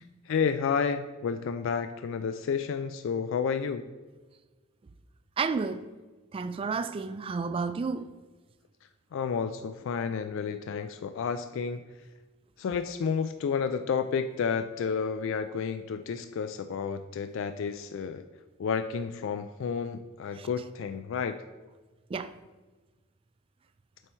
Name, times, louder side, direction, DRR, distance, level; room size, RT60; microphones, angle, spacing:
voice 1, 0.3-3.9 9.1-11.8 12.6-18.2 18.6-21.4, left 6 dB, 65° left, 0.3 m, -31 dB
voice 2, 5.4-5.8 6.3-8.1 22.1-22.3, right 4 dB, 25° right, 0.3 m, -31 dB
7.9 x 4.5 x 4.3 m
head